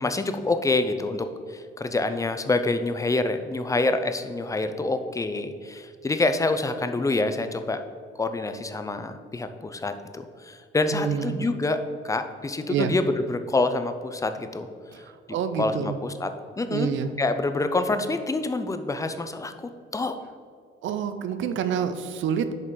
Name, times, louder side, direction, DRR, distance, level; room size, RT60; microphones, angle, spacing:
voice 1, 0.0-7.8 8.2-11.8 12.0-14.7 15.6-16.3 16.6-16.9 17.2-20.2, left 2 dB, 15° left, 9 dB, 0.5 m, -27 dB
voice 2, 10.9-11.5 12.7-12.9 14.9-16.0 16.7-17.1 20.8-22.5, right 7 dB, 75° right, 10 dB, 0.6 m, -28 dB
7.5 x 5.0 x 3.9 m, 2.1 s
cardioid pair, 90°, 20 cm